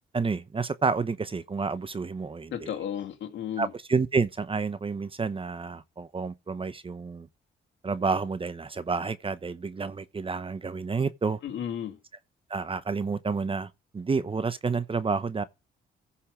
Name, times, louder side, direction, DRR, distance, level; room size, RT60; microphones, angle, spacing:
voice 1, 0.1-2.7 3.6-7.3 7.8-11.4 12.5-15.4, right 4 dB, 25° right, 0.9 m, -29 dB
voice 2, 2.5-3.7 11.4-12.0, left 9 dB, 70° left, 2.7 m, -33 dB
15.5 x 5.7 x 4.9 m
cardioid pair, 90°, 20 cm